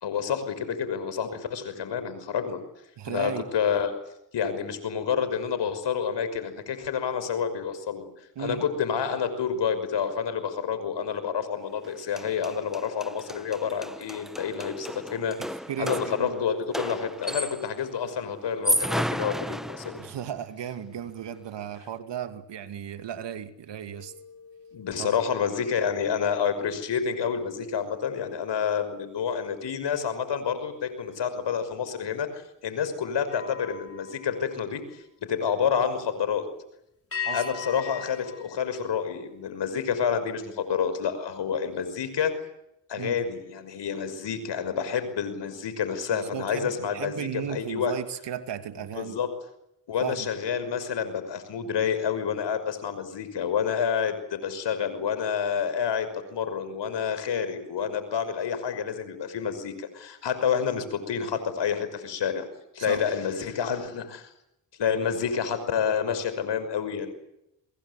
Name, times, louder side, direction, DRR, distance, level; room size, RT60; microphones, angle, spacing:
voice 1, 0.0-2.6 3.1-3.9 4.3-8.1 8.4-15.4 15.8-20.0 24.7-36.4 37.3-42.3 42.9-47.9 49.0-49.3 49.9-62.5 62.7-64.3 64.8-67.1, left 7 dB, 70° left, 5.9 m, -29 dB
voice 2, 3.0-3.5 8.4-8.6 15.4-16.5 20.0-24.1 25.0-25.1 37.3-37.4 43.0-43.1 46.1-49.2 50.0-50.3 62.8-63.1, right 9 dB, 75° right, 2.6 m, -35 dB
sound 1, 11.8-11.9 12.2-17.8 18.5-20.3, equal, ahead, 1.0 m, -32 dB
sound 2, 23.9-29.5 29.9-30.2 33.2-35.4 37.1-39.7, left 6 dB, 30° left, 5.3 m, -42 dB
26.0 x 22.5 x 8.3 m
supercardioid pair, 60°, 43 cm